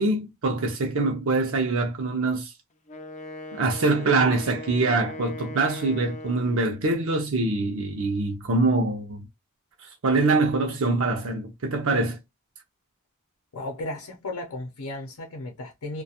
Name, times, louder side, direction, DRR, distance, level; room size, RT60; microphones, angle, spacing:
voice 1, 0.0-2.5 3.5-9.2 10.0-12.2, right 3 dB, 65° right, 0.6 m, -24 dB
Wind instrument woodwind instrument, 2.9-6.9, left 2 dB, 35° left, 0.4 m, -39 dB
voice 2, 13.5-16.0, left 2 dB, 85° left, 0.7 m, -35 dB
2.4 x 2.2 x 2.7 m
head